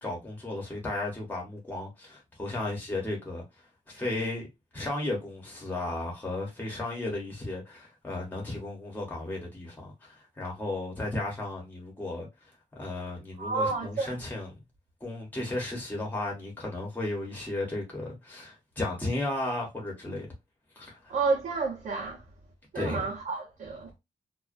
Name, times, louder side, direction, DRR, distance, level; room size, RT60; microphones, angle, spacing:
voice 1, 0.0-3.4 3.9-4.5 4.7-12.3 12.8-14.5 15.0-20.3 20.8-21.1 22.7-23.1, left 2 dB, 15° left, 0.8 m, -34 dB
voice 2, 13.4-14.2 21.1-22.2 22.7-24.0, right 4 dB, 75° right, 0.7 m, -30 dB
2.3 x 2.2 x 2.4 m
wide cardioid pair, 165°, 14 cm